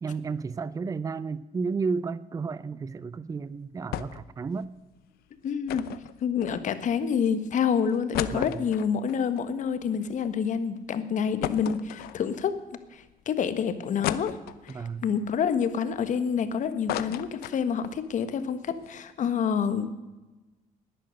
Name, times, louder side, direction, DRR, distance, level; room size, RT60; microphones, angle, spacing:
voice 1, 0.0-4.7 8.3-8.7 14.7-15.0, right 4 dB, 20° right, 18 dB, 0.5 m, -32 dB
sound 1, 3.9-4.3 4.6-4.7 5.7-6.9 7.5-7.6 7.9-10.3 10.7-10.8 11.4-12.6 13.1-13.2 14.0-14.9 15.4-16.4 16.7-18.0 18.3-18.4 18.7-18.9, left 13 dB, 85° left, 0.8 m, -35 dB
voice 2, 5.4-5.8 6.2-12.5 12.9-14.4 15.0-20.0, left 7 dB, 55° left, 11 dB, 1.5 m, -27 dB
19.0 x 10.5 x 6.5 m, 1.1 s
cardioid pair, 115°, 15 cm